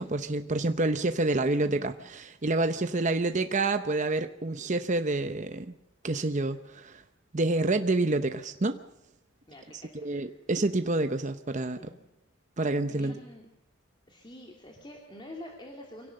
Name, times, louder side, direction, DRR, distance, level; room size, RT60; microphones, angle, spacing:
voice 1, 0.0-5.7 6.0-7.0 7.3-8.8 10.0-11.8 12.6-13.1, right 2 dB, 35° right, 8 dB, 0.8 m, -28 dB
voice 2, 9.5-10.4 11.8-12.0 12.9-13.5 14.1-16.1, left 1 dB, 25° left, 0 dB, 2.8 m, -47 dB
25.5 x 17.5 x 6.7 m, 0.89 s
head